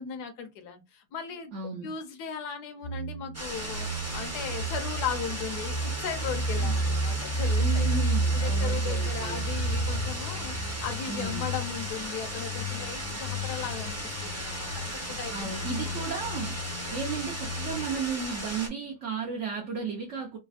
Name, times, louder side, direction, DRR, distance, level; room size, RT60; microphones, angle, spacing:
voice 1, 0.0-1.5 1.8-7.9 8.3-15.5 15.9-16.0, left 7 dB, 75° left, 1.2 m, -37 dB
voice 2, 1.5-1.9 6.6-6.8 7.6-9.4 11.1-11.5 15.3-16.6 16.9-20.4, right 5 dB, 65° right, 0.7 m, -34 dB
sound 1, 2.8-17.9, right 1 dB, 60° left, 0.8 m, -32 dB
sound 2, 3.3-18.7, right 1 dB, 15° right, 0.5 m, -37 dB
3.3 x 2.1 x 2.3 m
omnidirectional pair, 1.8 m